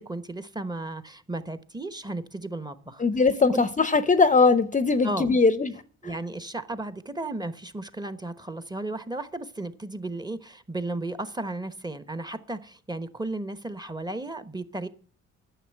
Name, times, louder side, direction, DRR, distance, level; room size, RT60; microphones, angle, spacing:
voice 1, 0.0-3.0 3.5-3.6 5.0-5.3 6.0-14.9, right 2 dB, 15° right, 1.1 m, -34 dB
voice 2, 3.0-5.8, left 4 dB, 25° left, 0.7 m, -20 dB
10.0 x 6.9 x 9.0 m
cardioid pair, 90°, 30 cm